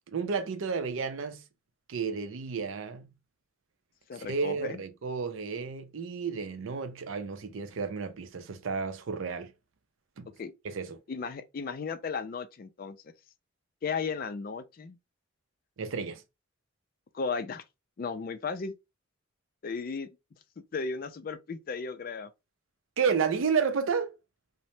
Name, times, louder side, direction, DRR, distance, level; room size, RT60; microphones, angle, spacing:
voice 1, 0.1-1.4 1.9-3.1 4.1-9.5 10.2-10.3 10.6-11.0 15.8-16.2 23.0-24.1, right 5 dB, 75° right, 0.5 m, -31 dB
voice 2, 4.1-4.8 10.4-10.5 11.1-13.0 13.8-15.0 17.1-17.6 18.0-18.7 19.6-20.1 20.7-22.3, left 5 dB, 45° left, 0.3 m, -35 dB
3.1 x 2.0 x 2.7 m
head